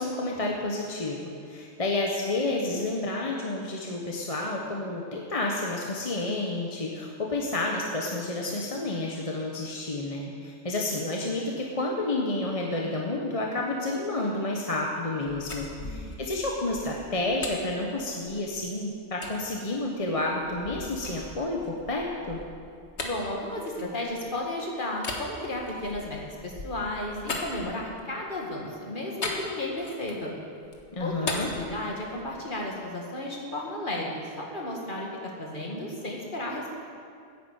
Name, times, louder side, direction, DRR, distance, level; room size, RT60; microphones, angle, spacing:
voice 1, 0.0-22.4 30.9-31.5, left 2 dB, 35° left, -1 dB, 1.1 m, -30 dB
sound 1, 15.2-18.6 19.2-19.4 20.0-24.4 25.0-28.2 29.2-30.3 30.6-32.4, left 3 dB, 85° left, 1.7 m, -39 dB
voice 2, 15.8-16.2 23.0-26.2 26.4-30.3 31.0-35.1 35.4-36.8, left 1 dB, 50° left, -2 dB, 2.2 m, -33 dB
10.0 x 9.9 x 8.1 m, 2.3 s
omnidirectional pair, 1.1 m